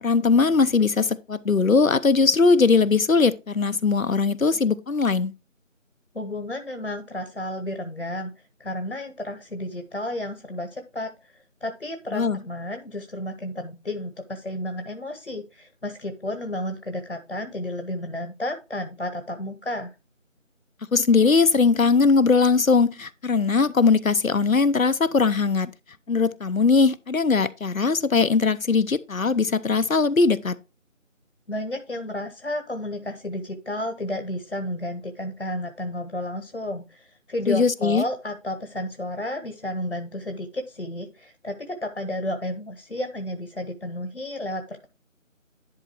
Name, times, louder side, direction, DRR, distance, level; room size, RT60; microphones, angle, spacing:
voice 1, 0.0-5.3 12.1-12.4 20.9-25.7 26.1-30.6 37.5-38.0, left 4 dB, 85° left, 0.8 m, -20 dB
voice 2, 6.1-8.3 8.6-19.9 31.5-44.9, left 1 dB, 55° left, 1.1 m, -32 dB
10.5 x 3.8 x 4.4 m
figure-of-eight pair, 175°, 39 cm